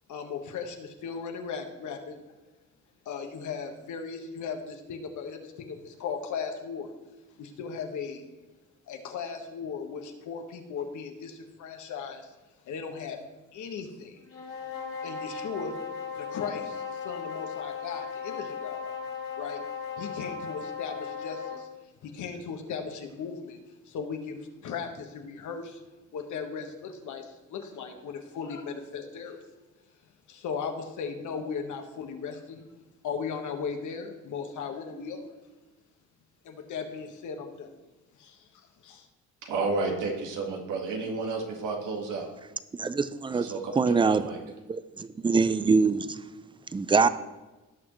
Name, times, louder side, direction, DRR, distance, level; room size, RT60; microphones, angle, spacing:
voice 1, 0.1-2.2 3.0-6.9 7.4-8.2 8.9-12.3 12.6-13.2 13.5-14.2 15.0-15.8 16.1-18.9 19.3-19.6 20.0-21.7 22.0-23.6 23.8-25.8 26.1-29.4 30.3-32.7 33.0-35.3 36.4-37.7 38.2-39.1, left 6 dB, 75° left, 1.5 m, -37 dB
sound 1, 14.3-21.7, left 6 dB, 50° left, 2.4 m, -37 dB
voice 2, 39.4-42.3 43.3-44.4, right 3 dB, 90° right, 1.9 m, -31 dB
voice 3, 42.7-44.2 44.7-46.2 46.7-47.1, right 4 dB, 15° right, 0.5 m, -24 dB
17.0 x 6.3 x 3.1 m
cardioid pair, 90°, 30 cm